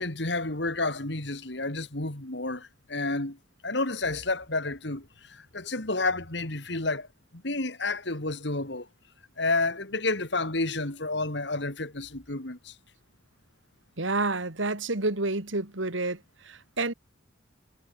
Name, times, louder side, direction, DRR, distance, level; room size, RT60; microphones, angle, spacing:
voice 1, 0.0-3.4 3.6-7.1 7.3-8.9 9.4-12.7, left 2 dB, 60° left, 2.7 m, -30 dB
voice 2, 14.0-16.9, right 2 dB, 75° right, 2.6 m, -29 dB
head